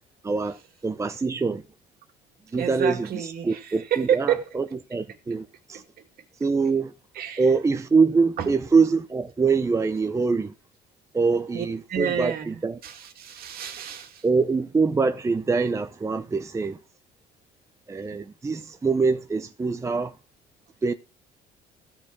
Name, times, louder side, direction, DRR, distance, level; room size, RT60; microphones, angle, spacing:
voice 1, 0.2-0.6 0.8-1.6 2.5-2.9 3.4-4.6 4.9-5.8 6.4-6.9 7.4-10.5 11.1-12.7 14.2-16.8 17.9-20.1 20.8-20.9, right 4 dB, 15° right, 0.6 m, -24 dB
voice 2, 2.5-4.6 5.1-5.2 5.7-6.0 7.1-7.5 8.4-8.5 11.5-14.3 18.1-18.3, right 9 dB, 65° right, 2.4 m, -30 dB
15.5 x 6.3 x 4.6 m
cardioid pair, 110°, 17 cm